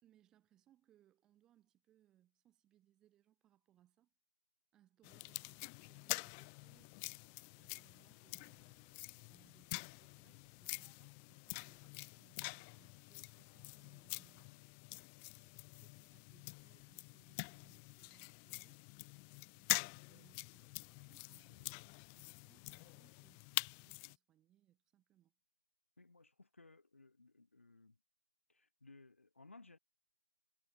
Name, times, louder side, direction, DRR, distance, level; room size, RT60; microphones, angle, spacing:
voice 1, 0.0-4.1 4.7-7.3 7.6-14.6 15.3-18.8 19.5-25.3, right 12 dB, 10° right, 4.2 m, -72 dB
sound 1, 5.0-24.2, left 38 dB, 10° left, 0.5 m, -46 dB
voice 2, 26.0-28.0 28.5-29.8, left 3 dB, 60° left, 6.7 m, -61 dB
figure-of-eight pair, 155°, 8 cm